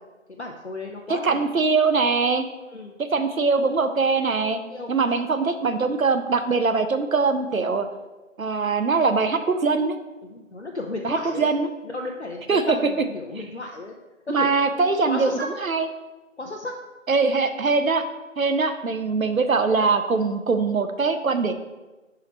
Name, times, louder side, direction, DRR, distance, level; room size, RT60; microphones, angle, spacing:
voice 1, 0.3-1.4 2.7-2.9 4.7-5.2 10.2-11.5 11.8-13.9 14.3-14.5 15.0-15.5 16.4-16.7 21.4-21.5, left 2 dB, 55° left, 1 dB, 0.6 m, -34 dB
voice 2, 1.1-2.5 3.0-4.6 4.9-7.9 8.4-10.0 11.0-11.7 12.5-12.6 14.3-15.9 17.1-18.1 18.4-21.5, right 4 dB, 85° right, 8 dB, 0.8 m, -22 dB
4.8 x 4.5 x 5.2 m, 1.1 s
figure-of-eight pair, 175°, 40 cm